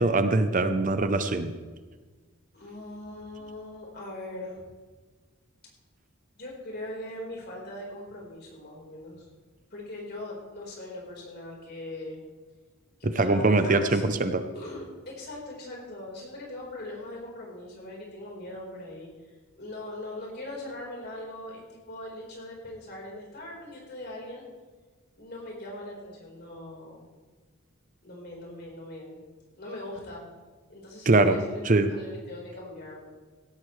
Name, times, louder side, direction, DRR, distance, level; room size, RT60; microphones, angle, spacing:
voice 1, 0.0-1.5 13.0-14.4 31.1-31.4 31.6-31.9, right 2 dB, 40° right, 9 dB, 0.7 m, -22 dB
voice 2, 2.5-4.6 6.3-9.3 9.7-12.2 13.0-14.2 14.5-19.1 19.6-24.4 25.2-27.1 28.0-29.2 29.6-30.2 30.7-33.0, left 1 dB, 50° left, -2 dB, 4.4 m, -40 dB
17.0 x 13.5 x 3.3 m, 1.4 s
head